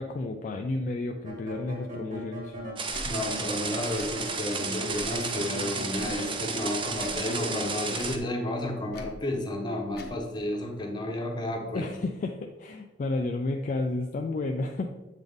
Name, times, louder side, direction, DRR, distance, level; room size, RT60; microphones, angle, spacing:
voice 1, 0.0-2.6 11.7-14.9, left 2 dB, 45° left, 4 dB, 0.3 m, -31 dB
sound 1, 1.2-2.8 3.2-7.7, equal, 45° right, 1.5 m, -40 dB
sound 2, 2.8-8.2, right 4 dB, 30° right, 0.5 m, -33 dB
Tick / Tick-tock, 2.9-3.1 3.9-4.1 4.9-5.2 5.9-6.2 6.9-7.2 7.9-8.2 8.9-9.2 9.9-10.2, left 1 dB, 60° left, 0.8 m, -43 dB
voice 2, 3.0-11.9, left 1 dB, 25° left, 1 dB, 0.9 m, -32 dB
7.2 x 3.9 x 3.5 m, 1.1 s
head